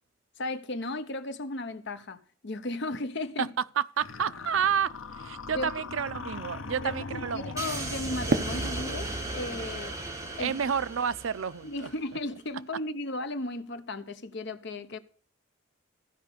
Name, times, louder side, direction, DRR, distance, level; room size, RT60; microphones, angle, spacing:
voice 1, 0.4-3.5 5.5-5.7 6.8-10.0 10.4-10.6 11.6-15.0, left 2 dB, 65° left, 1.0 m, -35 dB
voice 2, 3.8-7.5 10.4-11.9, right 7 dB, 85° right, 0.5 m, -30 dB
sound 1, 4.0-8.3, left 4 dB, 90° left, 0.8 m, -40 dB
sound 2, 7.6-11.9, right 2 dB, 15° right, 2.2 m, -36 dB
Fireworks, 8.3-11.3, right 2 dB, 55° right, 1.1 m, -34 dB
14.5 x 5.1 x 6.6 m
head